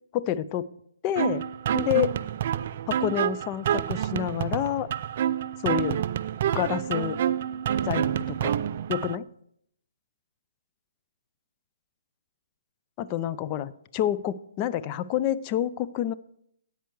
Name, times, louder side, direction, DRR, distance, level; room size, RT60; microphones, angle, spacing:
voice 1, 0.1-0.7 1.0-1.4 1.7-2.1 2.9-4.9 5.6-6.0 6.5-7.2 7.9-8.6 8.9-9.3 13.0-16.1, left 11 dB, 25° left, 15 dB, 0.4 m, -28 dB
sound 1, 1.2-9.2, right 10 dB, 45° right, 0.3 m, -28 dB
10.0 x 8.1 x 4.7 m, 0.71 s
hypercardioid pair, 145°, 0 cm